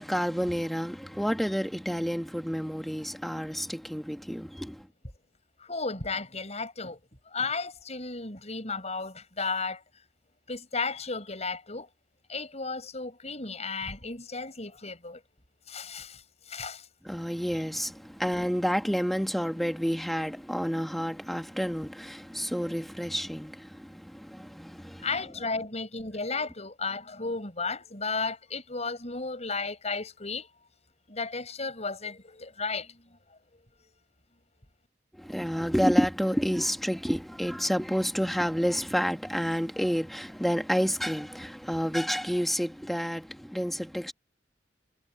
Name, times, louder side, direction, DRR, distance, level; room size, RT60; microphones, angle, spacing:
voice 1, 0.0-4.9 17.0-25.0 35.1-44.1, equal, ahead, 1.6 m, -29 dB
voice 2, 5.6-7.0 7.3-9.8 10.5-11.9 12.3-15.2 15.7-16.9 25.0-30.5 31.1-33.2 33.5-33.6, left 4 dB, 35° left, 7.5 m, -34 dB
head